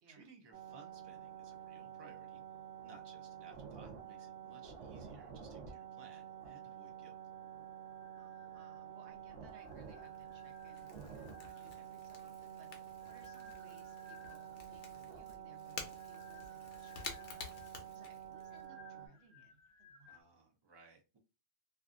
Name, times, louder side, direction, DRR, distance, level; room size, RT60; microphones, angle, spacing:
voice 1, 0.1-2.4 2.8-7.2 20.1-21.2, right 3 dB, 45° right, 2 dB, 0.3 m, -61 dB
sound 1, 0.5-19.1, right 9 dB, 90° right, 1.0 m, -50 dB
sound 2, 7.2-9.0 9.5-11.9 12.6-14.8 15.7-20.2, left 5 dB, 50° left, 0.4 m, -63 dB
voice 2, 8.2-20.3, right 3 dB, 65° right, 4 dB, 1.0 m, -64 dB
Crackle / Crack, 9.1-18.6, left 5 dB, 75° left, 1.0 m, -52 dB
2.6 x 2.5 x 2.4 m, 0.29 s
omnidirectional pair, 1.3 m